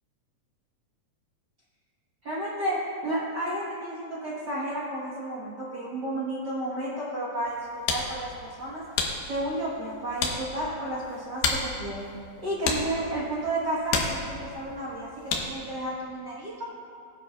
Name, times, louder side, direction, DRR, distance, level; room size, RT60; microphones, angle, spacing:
voice 1, 2.2-8.8 9.3-12.0 12.4-16.7, right 1 dB, 75° right, -6 dB, 0.9 m, -32 dB
sound 1, 7.4-15.7, left 4 dB, 85° left, 3.0 m, -33 dB
20.0 x 10.0 x 2.4 m, 2.4 s
omnidirectional pair, 4.1 m